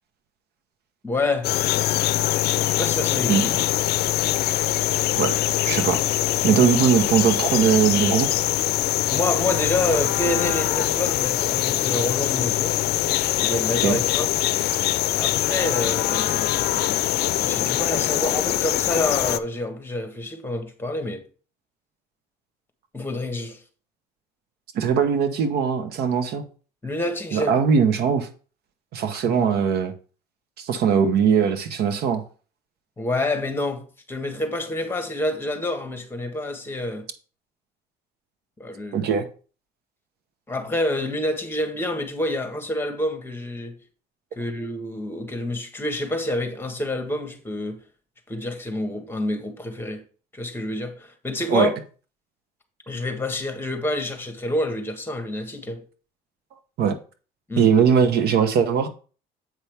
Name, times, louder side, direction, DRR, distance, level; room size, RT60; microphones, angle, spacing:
voice 1, 1.0-1.5 2.6-3.5 3.8-3.9 6.4-6.6 9.1-12.8 13.4-14.3 15.2-16.6 17.4-21.2 22.9-23.6 26.8-27.5 29.2-29.4 33.0-37.0 38.6-39.1 40.5-43.7 44.4-47.8 48.3-50.0 50.3-51.7 52.9-55.8 57.5-57.7, left 1 dB, 15° left, 1.5 m, -28 dB
sound 1, 1.4-19.4, left 15 dB, 70° left, 0.5 m, -23 dB
voice 2, 5.6-6.0 6.4-8.3 13.8-14.0 24.7-26.4 27.3-28.3 28.9-29.9 30.6-32.2 38.9-39.3 51.5-51.7 56.8-56.9 57.6-58.9, right 7 dB, 70° right, 1.1 m, -20 dB
7.9 x 5.7 x 3.5 m
cardioid pair, 110°, 17 cm